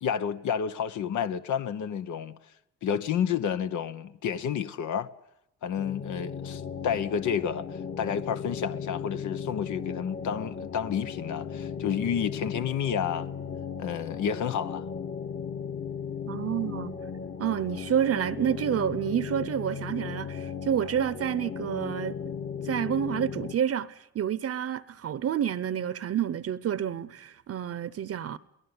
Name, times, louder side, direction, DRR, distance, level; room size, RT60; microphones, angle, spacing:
voice 1, 0.0-2.4 2.8-5.1 5.6-13.3 13.8-14.9, left 8 dB, 75° left, 1.1 m, -30 dB
sound 1, 5.8-23.5, left 6 dB, 40° left, 2.0 m, -36 dB
voice 2, 16.3-17.0 17.4-22.2 22.6-28.4, right 9 dB, 50° right, 0.8 m, -29 dB
22.5 x 19.0 x 9.7 m
cardioid pair, 90°, 30 cm